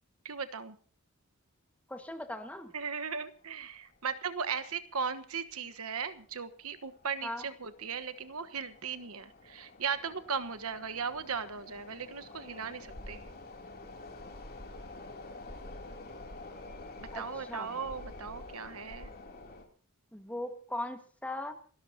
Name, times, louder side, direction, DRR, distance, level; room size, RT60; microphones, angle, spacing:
voice 1, 0.2-0.8 2.7-13.2 17.0-19.1, right 6 dB, 70° right, 12 dB, 1.2 m, -37 dB
voice 2, 1.9-2.7 7.2-7.4 17.1-17.2 17.5-17.8 20.1-21.5, left 1 dB, 5° left, 6 dB, 1.7 m, -39 dB
sound 1, 2.7-2.8 3.1-3.2 4.0-4.2 4.5-4.6 5.2-5.5 6.0-19.6, left 2 dB, 45° left, 3.1 m, -48 dB
28.5 x 13.0 x 2.8 m, 0.43 s
head